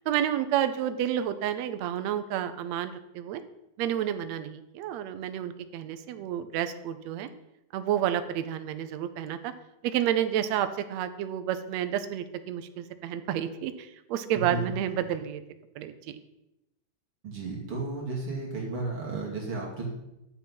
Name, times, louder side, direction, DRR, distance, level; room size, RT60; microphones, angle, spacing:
voice 1, 0.1-3.4 3.8-7.3 7.7-9.5 9.8-15.4 15.8-16.2, right 10 dB, 70° right, 10 dB, 1.7 m, -30 dB
voice 2, 17.2-19.9, right 3 dB, 45° right, -3 dB, 3.1 m, -33 dB
11.5 x 7.4 x 5.6 m, 0.90 s
omnidirectional pair, 3.7 m